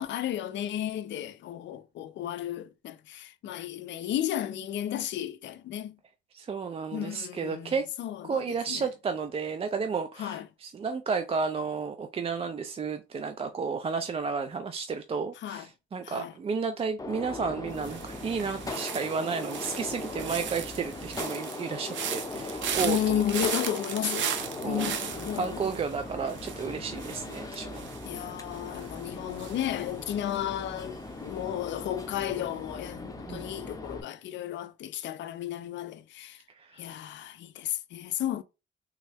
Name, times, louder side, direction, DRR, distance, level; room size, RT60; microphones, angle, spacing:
voice 1, 0.0-6.0 6.9-7.7 8.0-8.9 10.2-10.5 15.4-15.7 16.0-16.3 22.8-25.6 28.0-36.4 36.8-38.4, left 11 dB, 65° left, 0.4 m, -33 dB
voice 2, 6.3-7.8 8.2-23.5 24.6-24.9 25.4-27.8 33.3-33.5 36.6-36.9, right 5 dB, 30° right, 0.3 m, -32 dB
Gunshot gunfire, 17.0-34.0, left 2 dB, 15° left, 0.7 m, -39 dB
sound 1, 17.7-30.8 31.0-31.5, right 8 dB, 70° right, 0.6 m, -38 dB
3.5 x 2.1 x 3.3 m
cardioid pair, 90°, 20 cm